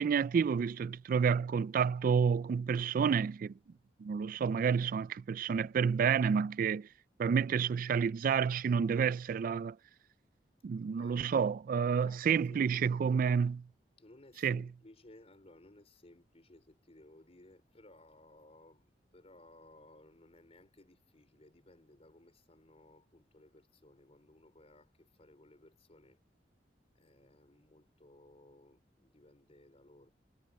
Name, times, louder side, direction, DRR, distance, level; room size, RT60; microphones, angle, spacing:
voice 1, 0.0-3.5 4.0-6.9 7.2-9.8 10.6-13.5 14.4-14.6, right 6 dB, 50° right, 0.3 m, -29 dB
voice 2, 10.9-11.5 11.8-13.3 14.0-26.2 26.9-30.1, left 1 dB, 35° left, 4.4 m, -59 dB
head